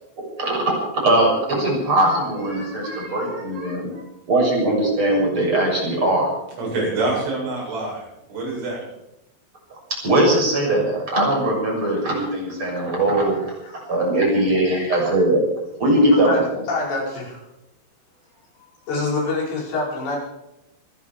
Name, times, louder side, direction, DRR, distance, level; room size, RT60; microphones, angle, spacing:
voice 1, 0.4-0.8 1.0-3.9 4.3-6.3 10.0-13.4 13.9-15.4 15.8-16.4, right 1 dB, 25° right, -1 dB, 7.3 m, -20 dB
voice 2, 2.4-4.0 6.6-8.0 8.3-8.8, right 2 dB, 80° right, -4 dB, 10.5 m, -28 dB
voice 3, 16.7-17.4 18.9-20.2, left 3 dB, 65° left, -4 dB, 7.5 m, -26 dB
27.0 x 11.0 x 4.8 m, 0.90 s
omnidirectional pair, 5.4 m